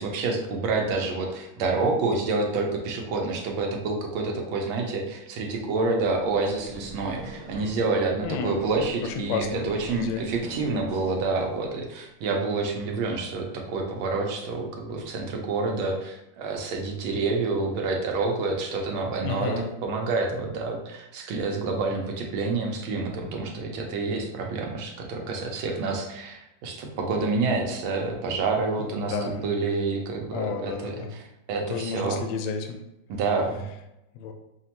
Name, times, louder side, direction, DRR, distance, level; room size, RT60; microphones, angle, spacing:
voice 1, 0.0-31.2 31.5-32.2 33.1-33.6, right 3 dB, 85° right, 1 dB, 1.6 m, -28 dB
sound 1, 6.2-11.7, right 1 dB, 40° right, 0.4 m, -43 dB
voice 2, 8.2-8.6 9.0-9.6 9.9-10.3 19.2-19.7 29.1-29.4 30.3-31.1 31.7-32.8 34.1-34.3, left 5 dB, 75° left, 5 dB, 1.2 m, -31 dB
6.3 x 2.2 x 2.9 m, 0.88 s
omnidirectional pair, 2.2 m